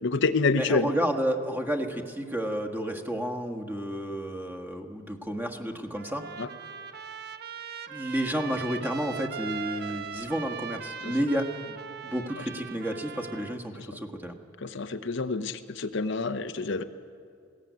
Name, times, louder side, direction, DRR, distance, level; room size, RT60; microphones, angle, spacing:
voice 1, 0.0-0.9 6.4-6.5 14.6-16.8, left 4 dB, 65° left, 9 dB, 0.8 m, -27 dB
voice 2, 0.6-6.2 7.9-11.8 12.0-14.3, equal, 10° right, 5 dB, 1.5 m, -31 dB
Trumpet, 6.0-13.6, right 7 dB, 55° right, 0.9 m, -40 dB
20.0 x 17.0 x 9.4 m, 2.3 s
head